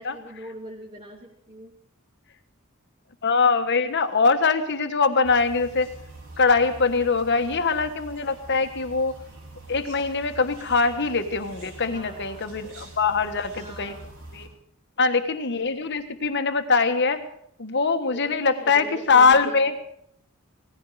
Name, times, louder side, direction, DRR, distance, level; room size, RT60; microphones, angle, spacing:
voice 1, 0.0-1.7 11.8-12.5 13.6-14.1 18.1-19.6, equal, 30° right, -5 dB, 2.6 m, -42 dB
voice 2, 3.2-5.9 6.4-9.2 9.7-14.0 14.3-14.5 15.0-17.2 17.6-19.7, left 4 dB, 55° left, 8 dB, 1.4 m, -22 dB
sound 1, 5.2-14.5, right 2 dB, 90° right, 6.4 m, -45 dB
18.0 x 15.0 x 4.9 m, 0.71 s
head